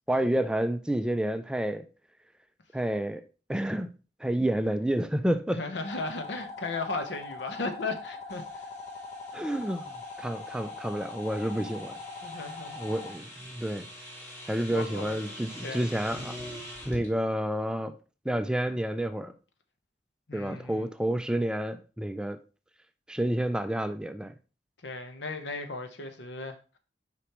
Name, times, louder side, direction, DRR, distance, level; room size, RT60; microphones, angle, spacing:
voice 1, 0.1-1.9 2.7-3.2 3.5-3.9 4.2-5.6 9.3-12.0 12.8-13.9 14.5-16.4 16.9-18.0 18.2-19.3 20.3-22.4 23.1-24.3, right 1 dB, 5° right, 0.3 m, -29 dB
voice 2, 5.5-8.7 12.2-13.0 14.7-15.9 20.3-20.9 24.8-26.8, left 3 dB, 80° left, 0.9 m, -36 dB
sound 1, 5.8-13.1, left 3 dB, 40° left, 0.8 m, -42 dB
sound 2, 8.3-17.1, equal, 15° left, 3.1 m, -45 dB
6.6 x 5.0 x 3.0 m
head